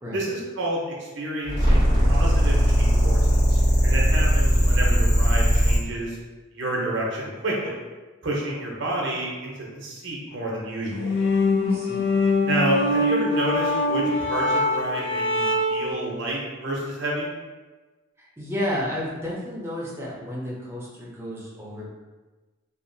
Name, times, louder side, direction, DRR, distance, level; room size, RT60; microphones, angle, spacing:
voice 1, 0.1-6.2 6.5-7.8 8.2-11.2 12.5-17.3, right 1 dB, 60° right, -3 dB, 0.7 m, -29 dB
sound 1, 1.5-5.8, equal, 60° left, 1.4 m, -19 dB
sound 2, 10.9-15.9, left 2 dB, 80° left, 0.5 m, -23 dB
voice 2, 11.6-12.0 18.2-21.9, left 1 dB, 10° right, -6 dB, 0.5 m, -32 dB
2.7 x 2.4 x 2.6 m, 1.2 s
head